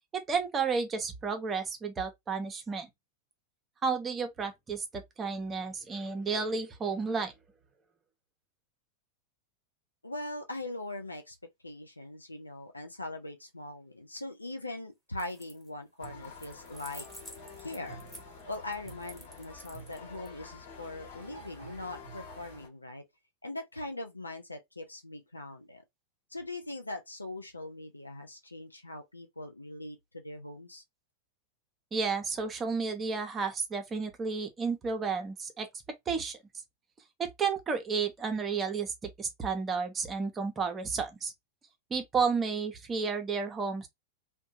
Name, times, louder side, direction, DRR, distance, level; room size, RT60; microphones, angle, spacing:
voice 1, 0.3-2.9 3.8-7.3 31.9-35.7 36.1-36.4 37.2-41.3 41.9-43.9, right 5 dB, 20° right, 0.7 m, -32 dB
voice 2, 10.0-11.4 11.6-17.0 17.6-18.0 18.5-23.0 23.4-25.8 26.3-30.8, left 2 dB, 85° left, 0.5 m, -41 dB
sound 1, 15.1-15.7 16.0-20.3, equal, 5° left, 1.0 m, -50 dB
sound 2, 16.0-22.7, left 2 dB, 55° left, 1.2 m, -48 dB
2.6 x 2.2 x 2.6 m
figure-of-eight pair, 90°, 0 cm